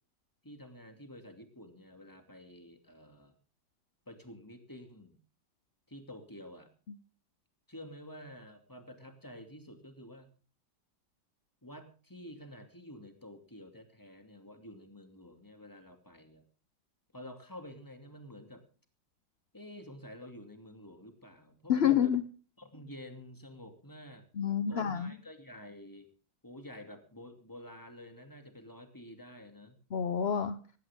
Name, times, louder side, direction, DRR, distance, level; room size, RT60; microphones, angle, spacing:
voice 1, 0.4-3.3 4.1-5.2 5.9-6.7 7.7-10.3 11.6-16.4 17.1-18.6 19.5-22.1 22.6-24.3 24.7-26.1 26.4-29.7, left 1 dB, 10° left, 6 dB, 2.6 m, -50 dB
voice 2, 21.7-22.2 24.4-25.1 29.9-30.6, left 8 dB, 50° left, 12 dB, 0.7 m, -28 dB
19.5 x 16.5 x 3.7 m, 0.38 s
omnidirectional pair, 2.0 m